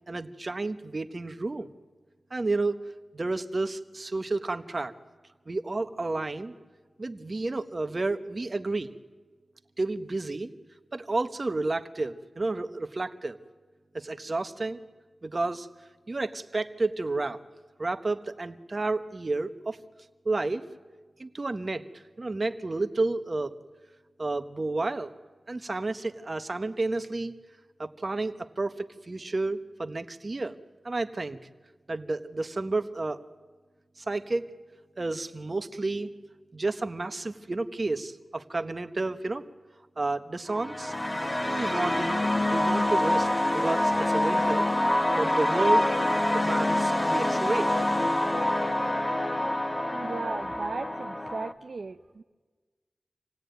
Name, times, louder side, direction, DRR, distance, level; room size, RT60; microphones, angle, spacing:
voice 1, 0.1-1.7 2.3-2.8 3.1-4.9 5.5-6.5 7.0-8.9 9.8-10.5 10.9-13.4 13.9-14.8 15.2-15.7 16.1-17.4 17.8-19.8 20.2-20.6 21.2-21.8 22.2-23.5 24.2-25.1 25.5-27.3 27.8-30.5 30.8-31.4 31.9-33.2 34.0-34.5 35.0-36.1 36.5-39.4 40.0-40.9 41.4-43.3 43.5-44.7 45.2-45.9 46.3-47.7, right 2 dB, 50° right, 8 dB, 1.3 m, -31 dB
sound 1, 40.5-51.5, left 1 dB, 25° left, 1.4 m, -26 dB
voice 2, 49.9-52.2, right 4 dB, 70° right, 5 dB, 0.7 m, -36 dB
27.0 x 17.0 x 9.4 m, 1.4 s
cardioid pair, 40°, 0 cm